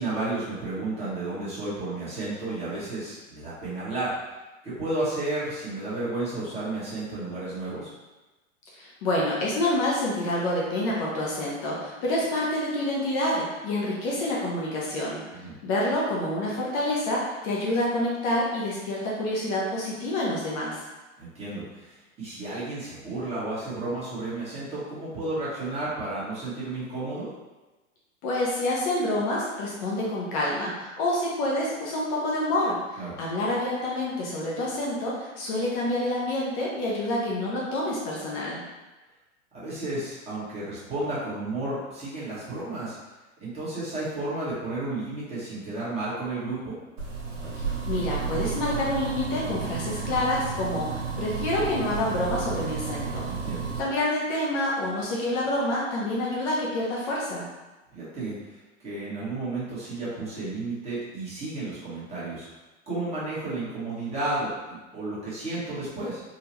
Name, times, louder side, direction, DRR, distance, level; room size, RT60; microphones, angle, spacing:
voice 1, 0.0-4.1 4.6-7.9 15.3-15.5 21.2-27.3 33.0-33.2 39.5-42.9 43.4-46.8 53.3-53.6 57.9-58.3 58.8-62.5 62.9-66.2, right 2 dB, 15° right, -10 dB, 1.3 m, -32 dB
voice 2, 8.7-20.8 28.2-38.6 47.9-53.3 53.8-57.4, left 1 dB, 40° left, -4 dB, 0.8 m, -27 dB
sound 1, 47.0-53.8, right 5 dB, 65° right, 1.5 m, -32 dB
3.8 x 2.3 x 2.9 m, 1.1 s
hypercardioid pair, 130°, 39 cm